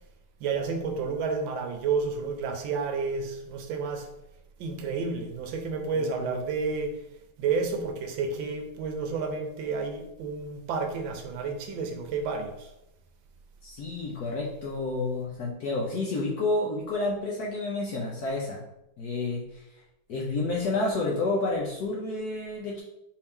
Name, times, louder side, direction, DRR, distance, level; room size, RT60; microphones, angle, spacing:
voice 1, 0.4-4.1 4.6-7.0 7.4-12.7, right 4 dB, 75° right, 5 dB, 1.2 m, -30 dB
voice 2, 5.9-6.4 13.6-18.6 19.0-19.6 20.1-22.8, left 2 dB, 65° left, -3 dB, 1.0 m, -30 dB
4.6 x 2.8 x 3.6 m, 0.85 s
omnidirectional pair, 2.3 m